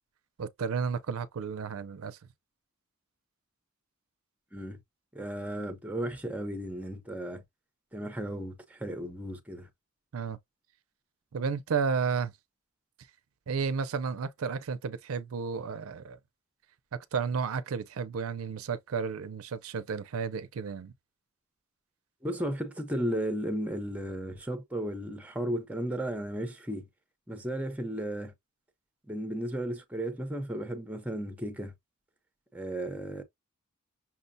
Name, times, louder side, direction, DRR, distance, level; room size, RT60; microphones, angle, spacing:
voice 1, 0.4-2.2 10.1-10.4 11.3-12.3 13.5-16.2 16.9-20.9, right 5 dB, 90° right, 0.5 m, -32 dB
voice 2, 5.1-7.4 7.9-9.7 22.2-26.9 27.3-28.3 29.1-31.7 32.5-33.2, right 1 dB, 5° right, 0.6 m, -34 dB
5.8 x 2.1 x 2.6 m
head